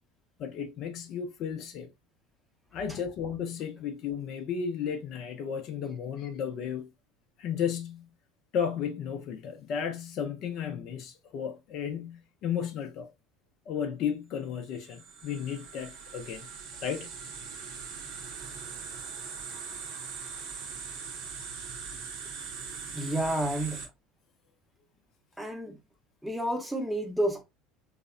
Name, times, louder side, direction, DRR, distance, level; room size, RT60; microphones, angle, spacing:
voice 1, 0.4-1.9 2.7-6.9 7.4-8.1 8.5-13.1 13.7-16.5 16.8-17.1, left 7 dB, 55° left, 0.5 m, -34 dB
sound 1, 14.7-23.9, right 5 dB, 65° right, 0.6 m, -41 dB
voice 2, 22.9-23.8 25.4-25.8 26.2-27.4, right 1 dB, 5° right, 0.7 m, -30 dB
2.7 x 2.0 x 2.4 m
hypercardioid pair, 70°, 0 cm